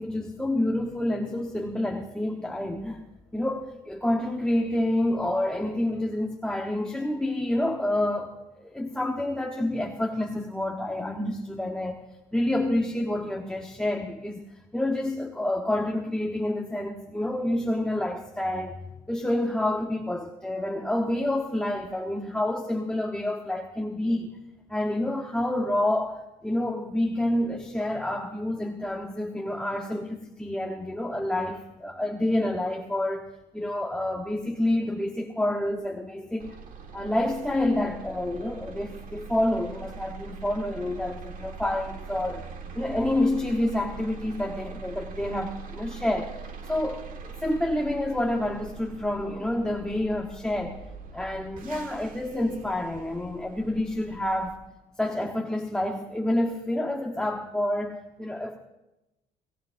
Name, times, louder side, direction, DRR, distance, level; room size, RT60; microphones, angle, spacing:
voice 1, 0.0-3.0 3.3-12.0 12.3-14.4 14.7-18.8 19.1-24.3 24.7-33.3 33.5-36.5 36.9-42.5 42.8-46.3 46.7-50.8 51.1-54.6 55.0-58.6, left 1 dB, 5° left, 1 dB, 1.2 m, -28 dB
sound 1, 36.4-54.6, right 5 dB, 55° right, 1.7 m, -42 dB
24.5 x 17.0 x 2.7 m, 0.96 s
cardioid pair, 110°, 17 cm